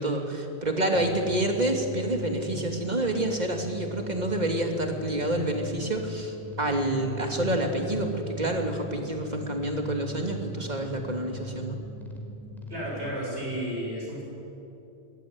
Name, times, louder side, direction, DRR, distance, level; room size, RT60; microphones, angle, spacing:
voice 1, 0.0-11.8, right 1 dB, 40° right, 2 dB, 2.9 m, -28 dB
sound 1, 0.9-13.1, right 1 dB, ahead, 4.3 m, -40 dB
voice 2, 12.7-14.2, equal, 80° right, -4 dB, 8.1 m, -32 dB
23.0 x 20.5 x 9.7 m, 2.8 s
omnidirectional pair, 1.1 m